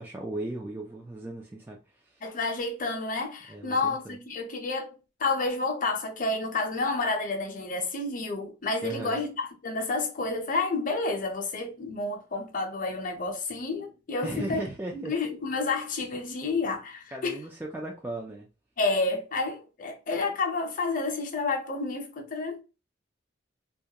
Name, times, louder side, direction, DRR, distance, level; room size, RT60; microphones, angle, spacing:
voice 1, 0.0-2.2 3.5-4.2 8.8-9.2 14.2-15.1 17.1-18.5, right 2 dB, 10° right, 0.3 m, -37 dB
voice 2, 2.2-4.9 5.2-9.3 9.6-14.6 14.9-17.4 18.8-22.6, left 3 dB, 45° left, 0.6 m, -30 dB
2.3 x 2.1 x 2.8 m
head